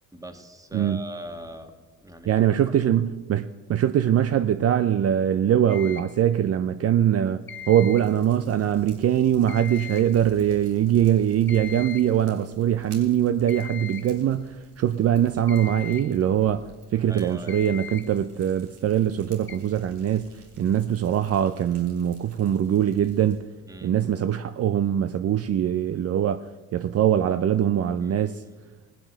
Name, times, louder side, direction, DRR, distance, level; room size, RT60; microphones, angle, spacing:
voice 1, 0.1-1.7 2.0-2.6 16.9-17.7 23.7-23.9 28.0-28.5, right 1 dB, 10° right, 1.6 m, -41 dB
voice 2, 0.7-1.0 2.3-20.3 20.6-23.4 23.8-28.4, right 10 dB, 55° right, 0.5 m, -22 dB
sound 1, 5.7-6.2 7.5-8.2 9.5-10.2 11.5-12.2 13.5-14.2 15.5-16.2 17.5-18.2 19.5-19.6, left 8 dB, 40° left, 1.2 m, -39 dB
Fire, 7.3-23.4, right 1 dB, 90° right, 3.6 m, -53 dB
18.0 x 7.6 x 6.5 m
cardioid pair, 90°, 30 cm